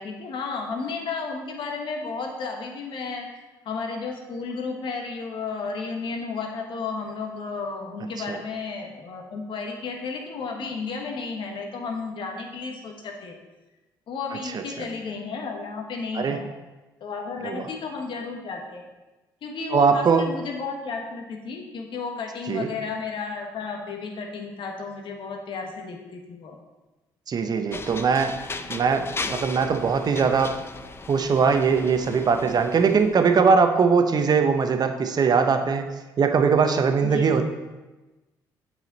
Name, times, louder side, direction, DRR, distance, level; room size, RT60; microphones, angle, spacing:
voice 1, 0.0-3.3 3.6-13.4 14.1-16.5 17.0-18.8 19.4-26.5 37.0-37.3, left 4 dB, 60° left, 2 dB, 1.3 m, -33 dB
voice 2, 19.7-20.2 22.5-22.7 27.3-28.4 28.7-30.5 31.1-35.8 36.2-37.5, right 5 dB, 45° right, 7 dB, 0.8 m, -21 dB
sound 1, 27.7-33.3, left 3 dB, 25° left, 0.5 m, -37 dB
8.0 x 4.9 x 4.1 m, 1.1 s
hypercardioid pair, 60°, 9 cm